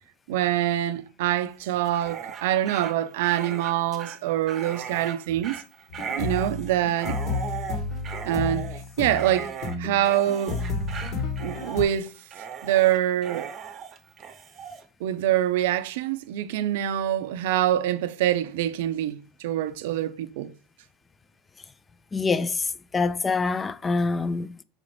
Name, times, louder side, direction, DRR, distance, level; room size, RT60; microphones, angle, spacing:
voice 1, 0.3-5.6 6.2-7.2 8.2-9.5 9.8-10.6 11.4-12.1 12.6-13.5 15.0-20.5, right 12 dB, 75° right, 0.4 m, -25 dB
Dog, 1.8-14.8, right 7 dB, 40° right, 0.7 m, -38 dB
sound 1, 5.9-11.8, left 4 dB, 55° left, 1.4 m, -31 dB
voice 2, 22.1-24.6, left 4 dB, 20° left, 0.3 m, -26 dB
4.9 x 2.5 x 3.1 m
hypercardioid pair, 100°, 0 cm